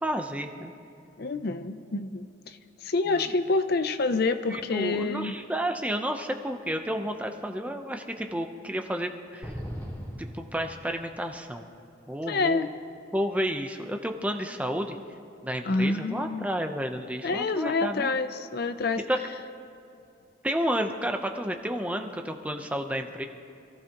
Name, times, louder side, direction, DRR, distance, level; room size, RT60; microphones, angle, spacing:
voice 1, 0.0-0.7 3.1-3.3 4.5-9.6 10.2-11.6 12.1-12.7 13.1-15.0 15.4-18.1 19.1-19.2 20.4-23.3, equal, 5° right, 5 dB, 0.7 m, -31 dB
voice 2, 1.2-5.3 12.3-12.7 15.6-16.4 17.2-19.0, left 3 dB, 50° left, 10 dB, 0.6 m, -27 dB
sound 1, 9.4-11.3, equal, 10° left, 2.8 m, -39 dB
27.0 x 15.5 x 3.0 m, 2.7 s
head